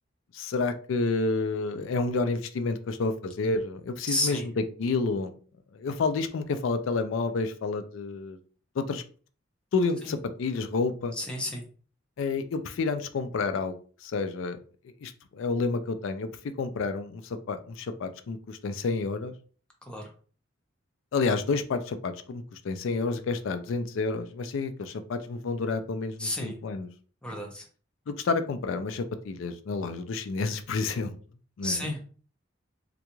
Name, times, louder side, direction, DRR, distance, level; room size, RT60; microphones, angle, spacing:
voice 1, 0.3-5.3 5.7-8.4 8.8-9.0 9.7-11.1 12.2-13.7 14.0-14.6 15.0-16.3 16.6-19.3 21.1-26.9 28.1-31.2 31.6-31.9, left 4 dB, 80° left, 9 dB, 0.4 m, -29 dB
voice 2, 4.1-4.4 11.2-11.6 19.9-20.1 26.2-26.6 27.2-27.6 31.6-32.0, left 1 dB, 5° left, 1 dB, 0.6 m, -31 dB
3.7 x 2.3 x 3.0 m, 0.41 s
head